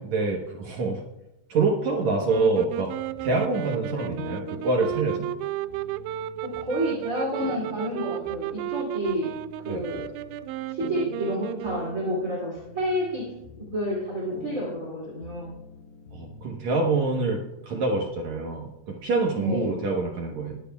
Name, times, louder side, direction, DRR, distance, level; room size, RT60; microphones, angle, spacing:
voice 1, 0.1-1.0 1.5-2.9 3.2-5.3 9.7-9.8 16.1-20.6, right 3 dB, 70° right, 0 dB, 1.7 m, -26 dB
sound 1, 2.3-16.5, left 5 dB, 85° left, 3.3 m, -46 dB
sound 2, 2.3-12.3, right 12 dB, 90° right, 2.7 m, -34 dB
voice 2, 6.4-9.3 9.6-10.0 10.7-13.2 13.7-15.5 19.4-19.8, equal, 25° right, -4 dB, 2.3 m, -29 dB
20.5 x 11.0 x 2.3 m, 0.92 s
omnidirectional pair, 4.9 m